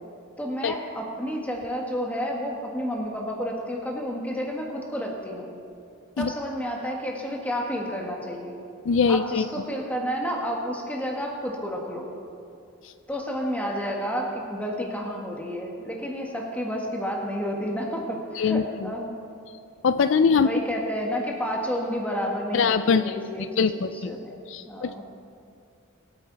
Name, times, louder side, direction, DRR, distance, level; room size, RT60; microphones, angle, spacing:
voice 1, 0.4-5.5 6.2-8.6 9.1-12.1 13.1-19.1 20.4-24.4 24.6-25.0, equal, 5° left, -1 dB, 1.7 m, -30 dB
voice 2, 8.9-9.5 12.8-12.9 18.4-18.9 19.8-20.5 22.5-23.1 23.6-24.1 24.5-25.0, left 5 dB, 65° left, 11 dB, 0.4 m, -22 dB
22.5 x 9.0 x 4.1 m, 2.5 s
head